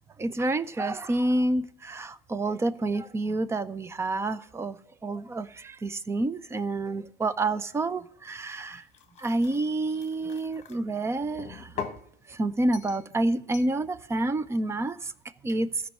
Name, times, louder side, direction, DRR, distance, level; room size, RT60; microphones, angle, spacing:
voice 1, 0.2-8.8 9.2-11.7 12.3-15.1 15.4-15.7, right 2 dB, 10° right, 0.4 m, -28 dB
sound 1, 8.5-10.8 11.4-12.1 12.7-13.1 13.5-13.8, left 6 dB, 25° left, 1.2 m, -41 dB
14.5 x 5.4 x 9.0 m
hypercardioid pair, 110°, 29 cm